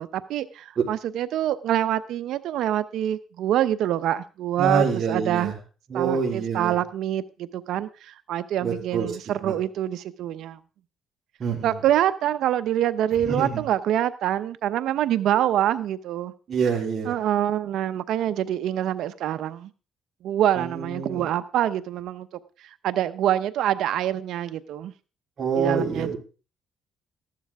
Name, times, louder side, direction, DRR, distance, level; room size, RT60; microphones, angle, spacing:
voice 1, 0.0-5.5 5.9-10.6 11.6-16.3 17.0-19.7 20.2-22.3 22.8-24.9 25.5-26.2, right 11 dB, 80° right, 0.7 m, -25 dB
voice 2, 4.6-5.5 5.9-6.8 8.6-9.1 9.4-9.6 11.4-11.7 13.3-13.6 16.5-17.2 20.6-21.3 25.4-26.2, right 5 dB, 50° right, 3.5 m, -26 dB
14.0 x 11.5 x 3.6 m
cardioid pair, 90°, 0 cm